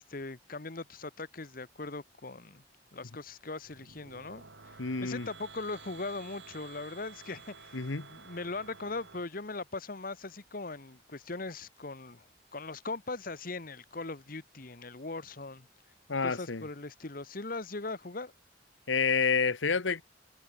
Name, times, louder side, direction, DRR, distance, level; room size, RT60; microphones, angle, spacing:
voice 1, 0.1-2.6 2.9-4.7 5.0-7.8 8.1-12.3 12.5-15.7 16.2-18.3, left 3 dB, 50° left, 1.3 m, -40 dB
sound 1, 3.6-9.2, right 5 dB, 75° right, 4.2 m, -52 dB
voice 2, 4.8-5.3 7.7-8.1 16.1-16.6 18.9-20.0, left 5 dB, 85° left, 1.2 m, -29 dB
head